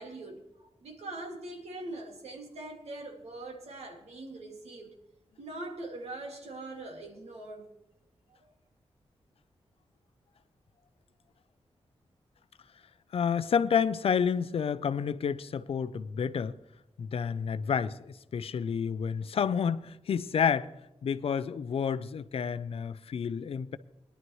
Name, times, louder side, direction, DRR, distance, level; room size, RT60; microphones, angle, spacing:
voice 1, 0.0-4.9 5.4-7.7, right 2 dB, 85° right, 2.3 m, -42 dB
voice 2, 13.1-16.6 17.0-20.7 21.0-23.8, left 7 dB, 65° left, 0.5 m, -29 dB
21.0 x 11.0 x 3.2 m
wide cardioid pair, 160°, 10 cm